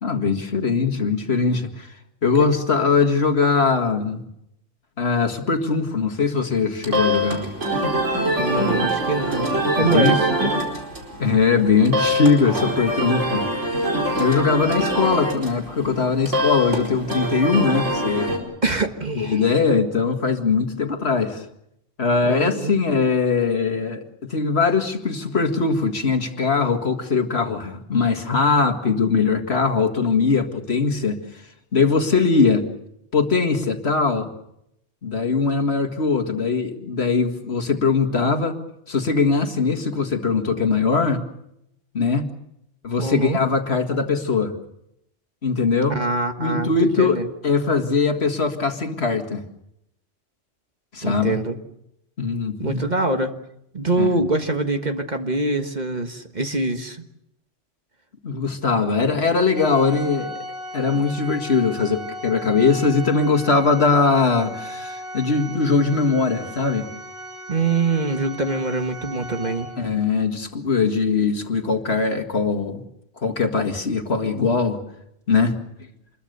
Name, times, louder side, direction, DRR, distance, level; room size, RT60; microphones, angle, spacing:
voice 1, 0.0-1.9 2.2-4.2 5.0-7.5 9.8-10.2 11.2-13.8 14.2-18.4 19.2-21.5 22.0-24.0 24.3-31.2 31.7-32.7 33.1-34.3 35.0-38.6 38.9-41.2 41.9-42.3 42.8-44.5 45.4-46.0 46.4-49.4 50.9-51.4 52.2-52.8 54.0-54.2 58.2-60.3 60.7-66.9 69.8-72.8 73.2-74.8 75.3-75.5, left 4 dB, 60° left, 6 dB, 2.1 m, -21 dB
sound 1, 6.8-18.4, equal, 75° right, 5.0 m, -24 dB
voice 2, 8.4-10.5 18.6-19.4 22.2-22.7 43.0-43.4 45.9-46.7 47.0-47.3 51.0-51.6 52.6-53.3 53.7-57.0 67.5-69.7, right 3 dB, 35° right, 6 dB, 1.6 m, -24 dB
Organ, 59.5-70.1, equal, 55° right, 6.2 m, -37 dB
27.0 x 21.5 x 6.8 m, 0.80 s
omnidirectional pair, 1.2 m